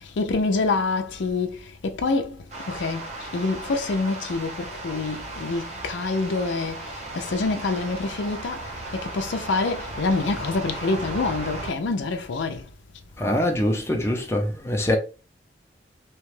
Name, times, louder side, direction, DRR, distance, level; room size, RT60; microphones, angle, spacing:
voice 1, 0.0-12.6, left 3 dB, 85° left, 0.5 m, -27 dB
sound 1, 2.5-11.7, right 2 dB, 35° right, 0.7 m, -36 dB
voice 2, 13.2-15.0, left 1 dB, 15° left, 0.5 m, -23 dB
2.9 x 2.2 x 3.1 m
head